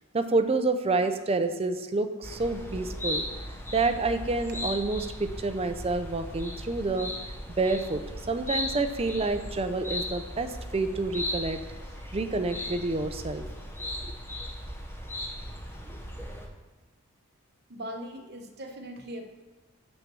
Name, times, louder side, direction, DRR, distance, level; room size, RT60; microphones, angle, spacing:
voice 1, 0.1-3.3 3.7-7.1 7.6-11.6 12.1-13.4 13.8-13.9, right 3 dB, 25° right, 8 dB, 0.5 m, -28 dB
sound 1, 2.2-16.5, left 1 dB, 10° left, 0.8 m, -37 dB
voice 2, 17.7-19.2, equal, 45° right, 3 dB, 1.0 m, -39 dB
7.4 x 6.3 x 6.2 m, 1.2 s
head